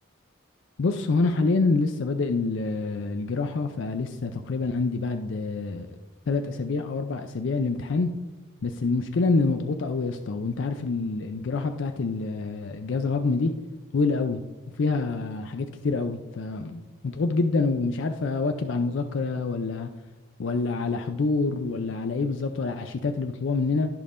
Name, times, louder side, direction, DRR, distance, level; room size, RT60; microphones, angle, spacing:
voice 1, 0.8-5.9 6.3-8.1 8.6-13.5 13.9-14.4 14.8-19.9 20.4-23.9, left 3 dB, 65° left, 6 dB, 0.4 m, -26 dB
15.0 x 5.3 x 2.5 m, 1.1 s
head